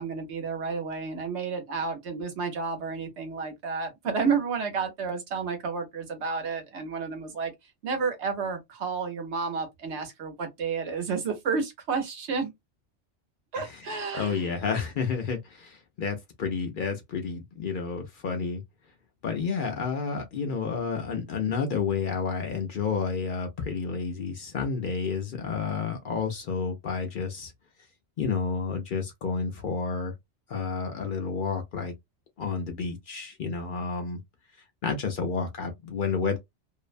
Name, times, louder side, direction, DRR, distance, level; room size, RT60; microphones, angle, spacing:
voice 1, 0.0-7.5 7.8-12.5 13.5-14.5, right 5 dB, 70° right, 1.1 m, -31 dB
voice 2, 14.1-18.6 19.2-27.5 28.2-30.1 30.5-31.9 32.4-34.2 34.8-36.4, left 5 dB, 55° left, 0.6 m, -30 dB
2.6 x 2.1 x 2.4 m
omnidirectional pair, 1.2 m